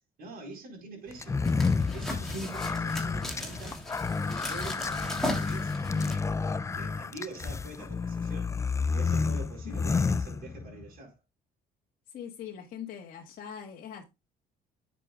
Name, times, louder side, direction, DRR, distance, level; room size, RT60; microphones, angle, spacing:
voice 1, 0.2-1.4 1.9-3.8 4.2-6.3 6.7-8.5 8.9-11.2, right 3 dB, 60° right, 4.5 m, -45 dB
sound 1, 1.1-6.1, left 1 dB, ahead, 3.0 m, -37 dB
sound 2, 1.2-10.9, left 4 dB, 15° left, 0.4 m, -30 dB
voice 2, 12.1-14.0, left 8 dB, 55° left, 1.6 m, -42 dB
9.9 x 6.8 x 2.4 m
cardioid pair, 110°, 17 cm